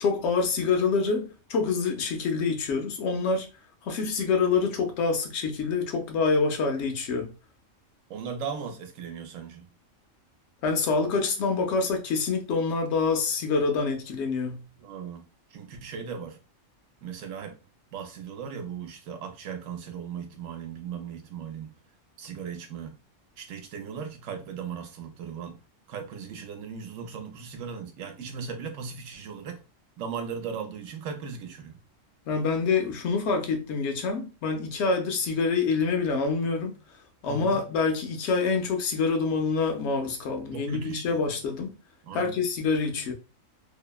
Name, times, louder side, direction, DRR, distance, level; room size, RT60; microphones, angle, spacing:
voice 1, 0.0-3.5 3.8-7.3 10.6-14.6 32.3-36.8 37.2-41.8 42.1-43.1, left 4 dB, 65° left, 0.9 m, -26 dB
voice 2, 8.1-9.7 14.8-15.2 15.5-16.4 17.0-17.6 17.9-21.7 22.2-23.0 23.4-25.6 25.9-29.6 30.0-31.8 37.3-37.6 40.5-41.2 42.0-42.4, right 6 dB, 80° right, 1.0 m, -37 dB
2.7 x 2.0 x 2.2 m
omnidirectional pair, 1.3 m